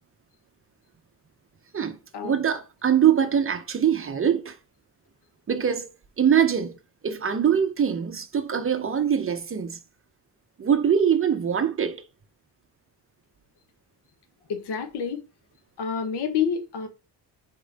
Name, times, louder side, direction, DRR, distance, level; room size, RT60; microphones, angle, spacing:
voice 1, 2.2-4.6 5.5-5.9 6.2-6.8 7.0-9.8 10.6-12.0, right 8 dB, 30° right, 0.6 m, -23 dB
voice 2, 14.5-15.2 15.8-16.9, left 7 dB, 65° left, 1.1 m, -28 dB
4.4 x 3.1 x 3.9 m
cardioid pair, 80°, 42 cm